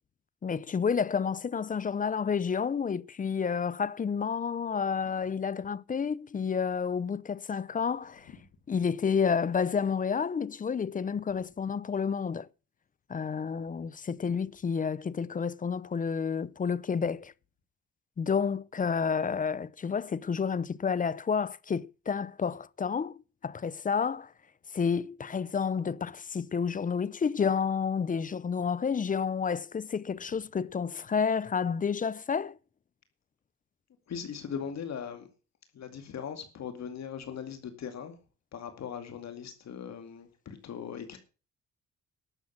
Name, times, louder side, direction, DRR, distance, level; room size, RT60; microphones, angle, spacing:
voice 1, 0.4-8.3 8.7-12.5 13.1-17.3 18.2-24.3 24.7-32.6, left 6 dB, 25° left, 0.5 m, -30 dB
voice 2, 34.1-35.3 35.7-38.2 38.5-41.2, left 7 dB, 60° left, 2.4 m, -39 dB
12.0 x 7.4 x 7.3 m
cardioid pair, 90°, 30 cm